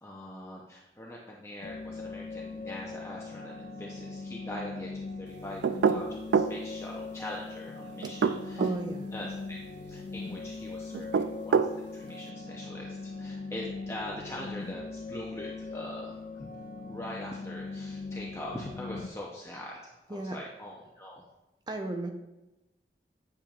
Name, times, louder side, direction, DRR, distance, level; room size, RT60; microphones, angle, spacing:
voice 1, 0.0-8.7 9.1-9.6 9.8-16.5 16.8-21.3, left 1 dB, 15° left, -3 dB, 0.7 m, -42 dB
sound 1, 1.6-19.1, left 3 dB, 50° left, 0.5 m, -40 dB
sound 2, 5.6-6.6 8.0-8.8 10.9-11.8, right 6 dB, 80° right, 0.3 m, -25 dB
voice 2, 8.6-9.1 20.1-20.4 21.7-22.1, right 2 dB, 25° right, 4 dB, 0.6 m, -34 dB
8.8 x 6.8 x 2.4 m, 0.98 s
head